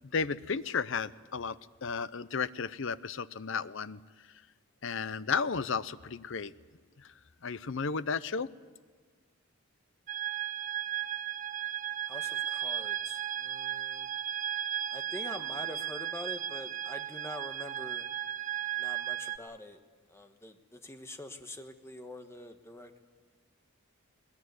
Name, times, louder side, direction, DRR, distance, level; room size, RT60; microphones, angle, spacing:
voice 1, 0.1-1.6 1.8-4.0 4.8-6.5 7.4-8.5, left 5 dB, 65° left, 16 dB, 0.7 m, -33 dB
sound 1, 10.1-19.4, right 11 dB, 40° right, 0.6 m, -35 dB
voice 2, 12.1-14.1 14.9-18.1 18.8-19.8 20.1-23.0, left 1 dB, 15° left, 7 dB, 1.3 m, -45 dB
20.5 x 19.5 x 9.5 m, 1.5 s
head